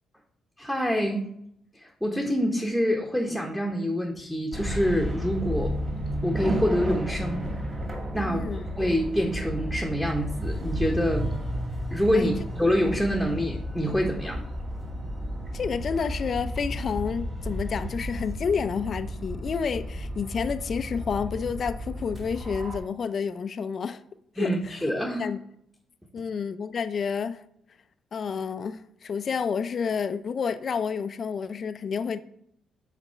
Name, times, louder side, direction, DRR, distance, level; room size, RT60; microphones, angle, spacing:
voice 1, 0.6-1.3 1.7-5.8 6.2-7.5 8.1-11.3 11.9-14.4 24.4-25.3, equal, ahead, 1.0 m, -26 dB
sound 1, 4.5-22.8, equal, 30° right, 2.6 m, -32 dB
voice 2, 8.2-8.7 12.1-12.3 15.5-24.0 24.4-24.8 25.2-25.4 26.1-27.4 28.1-32.2, left 6 dB, 50° left, 0.4 m, -30 dB
5.9 x 4.1 x 5.6 m
cardioid pair, 90°, 0 cm